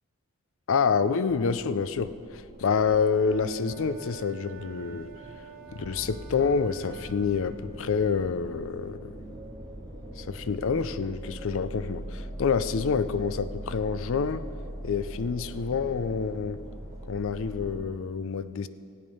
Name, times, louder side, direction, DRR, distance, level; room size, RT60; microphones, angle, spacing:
voice 1, 0.7-5.1 5.7-9.1 10.2-14.4 14.8-16.6 17.1-18.7, left 5 dB, 65° left, 14 dB, 0.5 m, -27 dB
sound 1, 1.3-17.8, right 1 dB, 15° right, 2.0 m, -49 dB
Wind instrument woodwind instrument, 3.0-7.6, right 5 dB, 65° right, 1.1 m, -48 dB
sound 2, 5.7-17.8, equal, 15° left, 1.6 m, -41 dB
16.0 x 8.8 x 5.4 m, 2.6 s
head